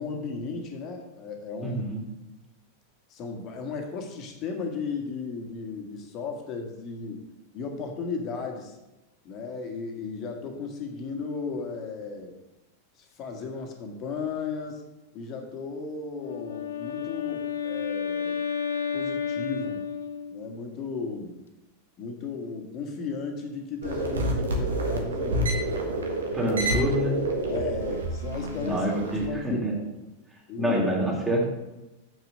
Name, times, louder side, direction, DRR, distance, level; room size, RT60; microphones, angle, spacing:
voice 1, 0.0-1.8 3.1-7.2 7.5-8.8 9.2-12.3 13.0-14.8 15.1-18.4 18.9-19.8 20.3-21.3 22.0-25.8 27.5-29.9 30.5-30.8, left 4 dB, 35° left, 3 dB, 1.6 m, -35 dB
voice 2, 1.6-2.0 26.3-27.2 28.6-29.7 30.5-31.5, right 1 dB, 10° right, -2 dB, 2.8 m, -26 dB
Wind instrument woodwind instrument, 16.0-20.6, left 7 dB, 70° left, 0.9 m, -31 dB
sound 1, 23.8-29.2, right 1 dB, 70° right, 1.5 m, -28 dB
7.2 x 6.2 x 6.3 m, 0.98 s
figure-of-eight pair, 90°, 0 cm